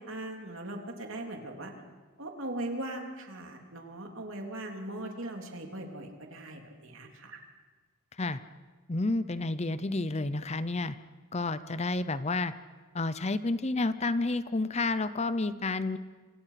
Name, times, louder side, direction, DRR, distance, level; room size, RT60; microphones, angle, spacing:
voice 1, 0.0-1.7 2.2-7.4, right 1 dB, 60° right, 2 dB, 3.4 m, -39 dB
voice 2, 8.9-11.0 11.3-12.5 12.9-16.0, left 2 dB, 30° left, 13 dB, 0.7 m, -30 dB
26.5 x 26.5 x 5.9 m, 1.4 s
head